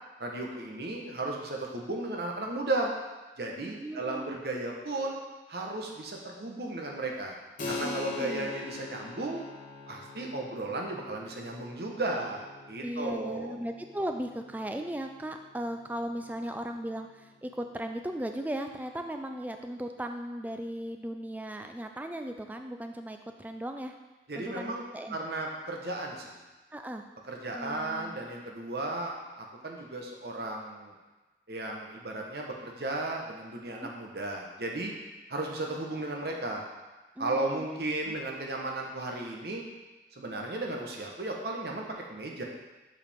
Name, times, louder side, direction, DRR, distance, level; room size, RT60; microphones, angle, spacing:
voice 1, 0.2-2.9 3.4-5.2 5.5-7.3 7.7-9.4 9.9-13.6 24.3-24.8 25.1-26.4 27.3-30.9 31.5-34.9 35.3-36.6 37.2-39.6 40.1-42.4, right 2 dB, 65° right, 0 dB, 1.0 m, -35 dB
voice 2, 3.8-4.4 7.8-8.5 12.8-23.9 24.4-25.2 26.7-27.0 27.5-28.3 33.8-33.9 37.2-37.6 38.1-38.2, right 1 dB, 10° right, 5 dB, 0.3 m, -37 dB
Keyboard (musical), 7.6-17.8, left 3 dB, 50° left, 0.9 m, -44 dB
7.3 x 4.8 x 3.5 m, 1.2 s
head